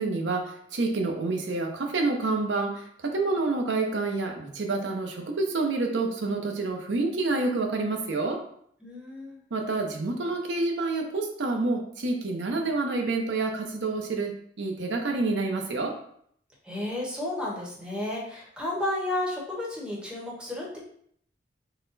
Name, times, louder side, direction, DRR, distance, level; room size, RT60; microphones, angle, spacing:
voice 1, 0.0-8.4 9.5-14.3 14.6-15.9, right 3 dB, 85° right, 3 dB, 0.7 m, -28 dB
voice 2, 8.8-9.4 16.6-20.8, left 1 dB, 5° right, -4 dB, 1.0 m, -32 dB
4.0 x 2.2 x 3.9 m, 0.66 s
head